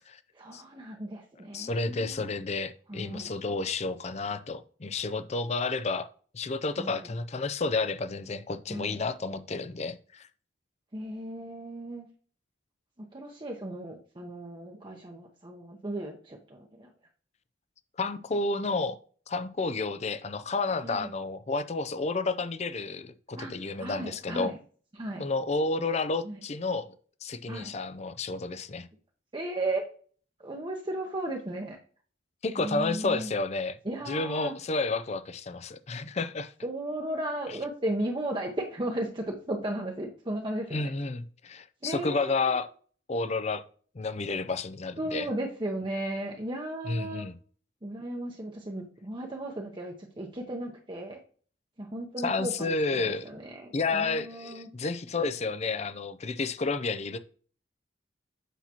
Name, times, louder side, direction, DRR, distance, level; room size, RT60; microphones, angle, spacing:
voice 1, 0.3-2.2 2.9-3.3 6.8-7.1 8.7-9.0 10.9-12.1 13.0-16.9 20.8-21.1 23.4-24.6 24.9-25.2 25.8-25.9 26.2-26.4 27.5-27.7 29.3-29.8 30.4-31.8 32.6-33.3 33.8-34.5 36.6-40.9 41.8-42.6 45.0-47.3 47.8-51.2 51.8-54.7, right 1 dB, 25° right, 0.8 m, -35 dB
voice 2, 1.5-6.1 6.3-10.3 18.0-19.0 19.3-24.5 25.2-27.0 27.2-28.9 32.4-33.8 34.1-36.5 40.7-42.7 43.1-43.6 43.9-45.3 46.9-47.3 52.2-53.3 53.7-57.2, left 3 dB, 35° left, 0.5 m, -31 dB
8.2 x 5.8 x 2.9 m
head